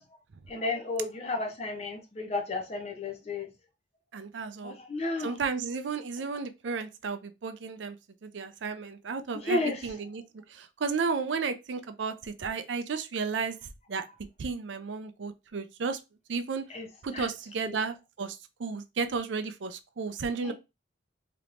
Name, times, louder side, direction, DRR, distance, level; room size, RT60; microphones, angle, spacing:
voice 1, 0.5-3.5 4.6-5.4 9.4-9.8 16.7-16.9 17.1-17.3 17.6-17.8 20.4-20.5, left 2 dB, 35° left, 0.6 m, -32 dB
voice 2, 4.1-4.7 5.2-8.0 8.2-10.2 10.5-14.0 14.4-16.0 16.3-16.7 17.0-20.5, right 5 dB, 70° right, 0.5 m, -33 dB
3.4 x 2.9 x 2.5 m
head